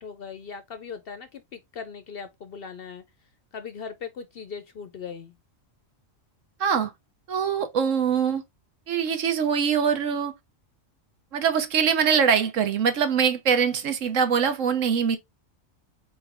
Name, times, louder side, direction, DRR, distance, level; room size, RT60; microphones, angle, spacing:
voice 1, 0.0-3.0 3.5-5.3, left 6 dB, 60° left, 0.7 m, -39 dB
voice 2, 6.6-6.9 7.3-8.4 8.9-10.3 11.3-15.2, right 7 dB, 70° right, 1.2 m, -23 dB
4.1 x 3.8 x 3.3 m
omnidirectional pair, 1.4 m